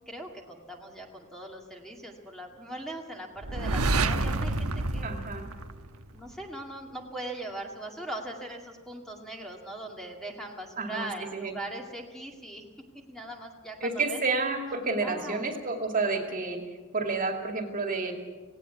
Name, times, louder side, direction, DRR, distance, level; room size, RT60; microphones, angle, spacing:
voice 1, 0.1-5.1 6.1-12.6 13.1-14.2 15.0-15.5, right 1 dB, ahead, 0 dB, 2.2 m, -40 dB
sound 1, 3.4-6.3, right 2 dB, 75° right, 1.2 m, -28 dB
voice 2, 5.0-5.4 10.8-11.5 13.8-16.6 16.9-18.1, right 3 dB, 40° right, 3 dB, 2.4 m, -30 dB
18.0 x 17.5 x 8.3 m, 1.3 s
head